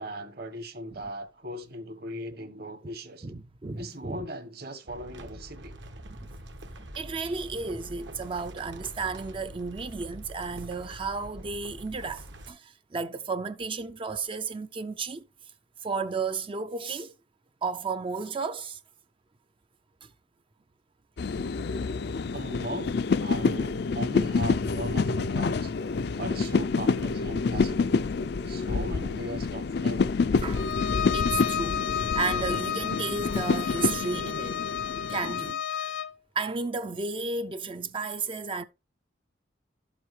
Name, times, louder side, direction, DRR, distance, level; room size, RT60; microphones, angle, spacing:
voice 1, 0.0-3.3 3.8-5.8 22.3-25.7 26.2-28.1 28.4-30.1, right 1 dB, 55° right, 1.4 m, -38 dB
voice 2, 3.2-4.2 6.8-15.3 15.8-17.1 17.6-18.8 20.0-20.1 30.4-30.7 30.9-34.6 35.1-36.0 36.4-38.6, right 4 dB, 30° right, 0.4 m, -33 dB
sound 1, 4.9-12.5, right 1 dB, 70° right, 1.3 m, -44 dB
sound 2, 21.2-35.5, left 4 dB, 60° left, 0.4 m, -28 dB
Bowed string instrument, 30.5-36.2, left 8 dB, 85° left, 0.8 m, -32 dB
12.0 x 7.4 x 3.2 m
head